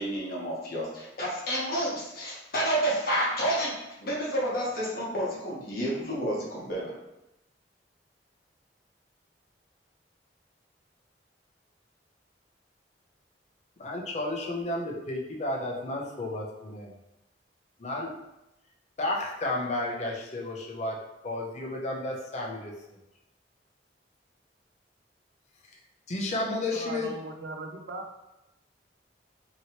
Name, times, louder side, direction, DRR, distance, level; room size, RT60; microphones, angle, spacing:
voice 1, 0.0-3.7 4.0-6.9, right 1 dB, 55° left, -5 dB, 1.0 m, -30 dB
voice 2, 13.8-16.9 17.8-18.1 19.0-21.0 21.2-22.7 26.1-27.1, left 2 dB, 40° left, -2 dB, 0.5 m, -32 dB
voice 3, 26.7-28.2, right 2 dB, 70° right, 4 dB, 0.4 m, -38 dB
3.0 x 2.8 x 2.8 m, 0.92 s
head